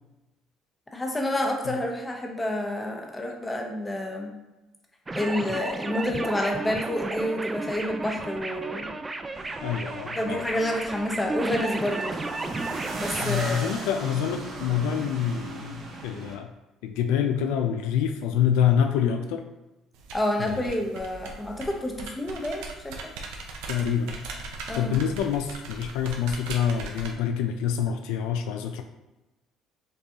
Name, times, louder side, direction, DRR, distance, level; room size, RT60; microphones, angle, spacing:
voice 1, 0.9-4.3 5.1-8.9 10.2-12.1 13.0-13.6 20.1-22.9 24.7-24.9, left 1 dB, 15° left, 1 dB, 0.8 m, -29 dB
sound 1, 5.1-13.3, right 2 dB, 20° right, 0.3 m, -33 dB
sound 2, 9.3-16.3, right 2 dB, 60° right, 0.9 m, -38 dB
voice 2, 9.6-10.4 13.2-16.5 16.8-19.4 20.4-20.8 23.7-24.2 24.7-28.8, left 8 dB, 85° left, 5 dB, 0.3 m, -26 dB
sound 3, 19.9-27.1, right 3 dB, 90° right, 0.6 m, -39 dB
5.2 x 2.3 x 2.8 m, 1.1 s
supercardioid pair, 90°, 0 cm